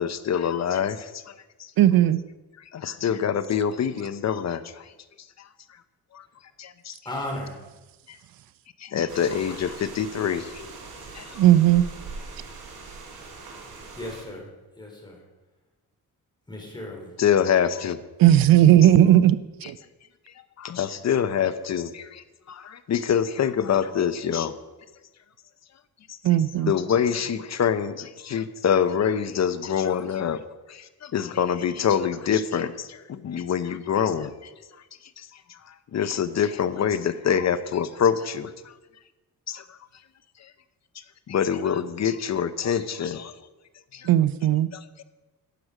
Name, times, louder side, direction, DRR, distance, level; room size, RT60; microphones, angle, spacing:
voice 1, 0.0-1.3 1.6-1.7 2.7-4.9 5.4-5.5 6.1-6.3 6.6-7.0 8.1-8.2 8.8-10.7 11.1-11.4 17.2-18.0 19.6-19.7 20.6-24.5 26.1-26.2 26.6-30.4 30.7-34.5 35.2-38.7 39.5-39.8 40.4-40.5 40.9-43.4 43.9-44.1 44.7-45.0, left 8 dB, 50° left, 13 dB, 0.7 m, -26 dB
voice 2, 1.8-2.2 11.4-11.8 18.2-19.4 19.7-19.8 26.2-26.7 44.1-44.7, right 12 dB, 70° right, 15 dB, 0.6 m, -16 dB
voice 3, 7.0-7.6 13.9-15.2 16.5-17.1, left 1 dB, 10° left, -1 dB, 3.6 m, -35 dB
sound 1, 9.1-14.2, right 4 dB, 90° right, 2.9 m, -41 dB
12.0 x 7.9 x 4.9 m, 1.1 s
cardioid pair, 95°, 36 cm